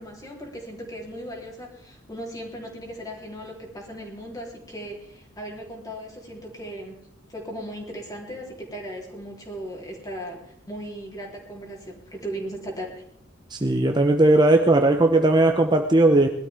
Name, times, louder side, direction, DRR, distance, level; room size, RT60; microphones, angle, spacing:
voice 1, 0.0-7.0 7.3-13.0, equal, 20° left, -1 dB, 3.5 m, -37 dB
voice 2, 13.5-16.3, right 2 dB, 20° right, 4 dB, 0.8 m, -18 dB
21.0 x 12.5 x 3.5 m, 0.73 s
head